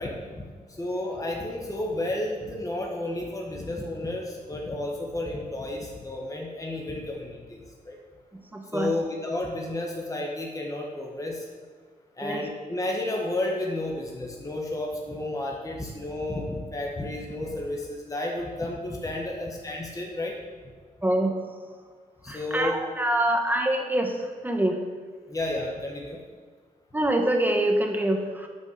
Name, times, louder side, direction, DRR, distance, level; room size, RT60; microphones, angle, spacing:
voice 1, 0.0-8.0 8.7-11.5 12.2-20.4 22.2-22.8 25.3-26.2, left 1 dB, 20° left, -1 dB, 1.5 m, -32 dB
voice 2, 8.5-9.0 12.2-12.5 21.0-21.4 22.3-24.8 26.9-28.5, right 1 dB, 10° right, 3 dB, 1.3 m, -25 dB
8.9 x 6.2 x 7.0 m, 1.5 s
wide cardioid pair, 100°, 15 cm